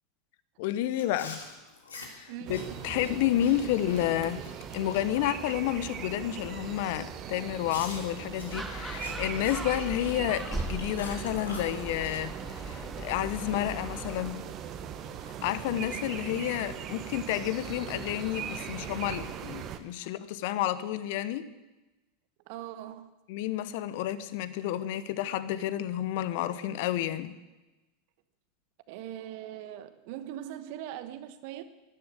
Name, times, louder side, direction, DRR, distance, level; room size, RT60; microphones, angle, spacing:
voice 1, 0.6-1.4 2.1-4.5 4.7-14.4 15.2-21.5 23.3-27.3, left 12 dB, 60° left, 1.0 m, -30 dB
Chewing mastication, 0.9-5.8 6.2-6.5 7.0-7.1 7.7-12.2, left 3 dB, 80° left, 2.6 m, -46 dB
voice 2, 2.3-2.8 22.5-23.1 28.9-31.6, right 12 dB, 55° right, 1.1 m, -41 dB
sound 1, 2.5-19.8, right 8 dB, 40° right, 1.4 m, -40 dB
Gull seagull, 8.5-14.3, right 1 dB, 10° right, 3.1 m, -39 dB
12.5 x 11.5 x 8.2 m
figure-of-eight pair, 85°, 0 cm